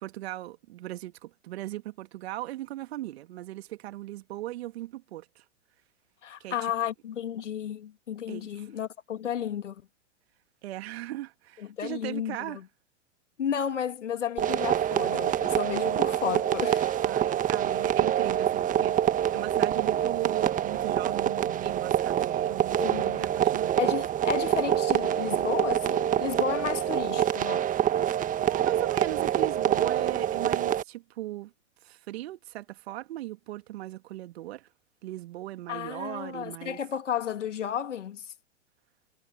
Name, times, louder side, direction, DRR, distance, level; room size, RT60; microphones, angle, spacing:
voice 1, 0.0-5.4 6.4-6.7 8.3-8.7 10.6-12.6 17.0-23.8 28.2-31.5 31.8-34.7 35.0-36.8, right 15 dB, 60° right, 2.5 m, -38 dB
voice 2, 6.2-9.8 11.8-12.6 13.4-16.9 22.8-23.4 23.8-27.7 35.7-38.3, left 9 dB, 75° left, 2.2 m, -33 dB
sound 1, 14.4-30.8, right 10 dB, 20° right, 1.3 m, -26 dB
hypercardioid pair, 105°, 36 cm